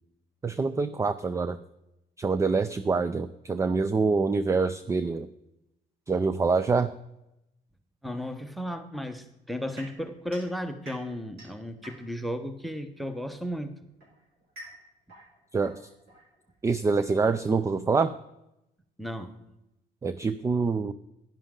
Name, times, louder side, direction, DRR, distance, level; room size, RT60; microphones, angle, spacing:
voice 1, 0.4-1.6 2.2-5.3 6.1-6.9 15.5-15.8 16.6-18.1 20.0-20.9, right 4 dB, 15° right, 13 dB, 0.4 m, -25 dB
voice 2, 8.0-13.7 19.0-19.3, equal, ahead, 9 dB, 1.0 m, -34 dB
sound 1, 9.8-12.4 13.4-16.8, right 1 dB, 70° right, 5.0 m, -50 dB
10.5 x 10.5 x 3.8 m, 0.87 s
cardioid pair, 110°, 17 cm